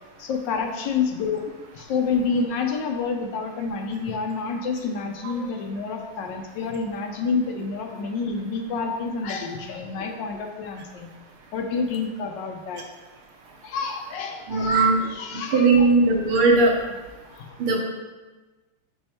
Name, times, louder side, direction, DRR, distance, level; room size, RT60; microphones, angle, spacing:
voice 1, 0.2-1.4 1.7-11.1 11.5-12.8 13.6-15.9 17.3-17.6, left 5 dB, 70° left, 4 dB, 1.1 m, -28 dB
voice 2, 14.5-15.0 15.5-16.7 17.6-17.8, right 3 dB, 75° right, 1 dB, 1.7 m, -18 dB
5.5 x 5.1 x 4.3 m, 1.2 s
omnidirectional pair, 2.4 m